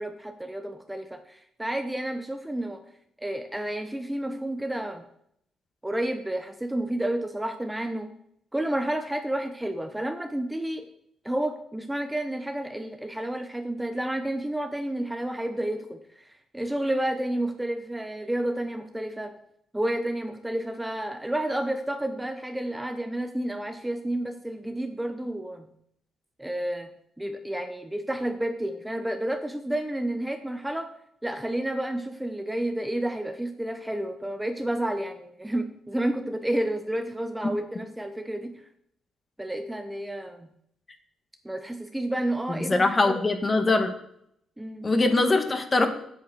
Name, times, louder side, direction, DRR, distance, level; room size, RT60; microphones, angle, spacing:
voice 1, 0.0-2.8 3.2-5.0 5.8-8.1 8.5-10.9 11.2-19.3 19.7-25.7 26.4-26.9 27.2-30.9 31.2-38.6 39.4-40.5 41.4-43.2 44.6-44.9, right 1 dB, 10° right, 7 dB, 0.8 m, -30 dB
voice 2, 42.5-43.9 44.8-45.9, left 2 dB, 25° left, 7 dB, 1.5 m, -22 dB
8.3 x 7.8 x 6.1 m, 0.72 s
cardioid pair, 90°, 0 cm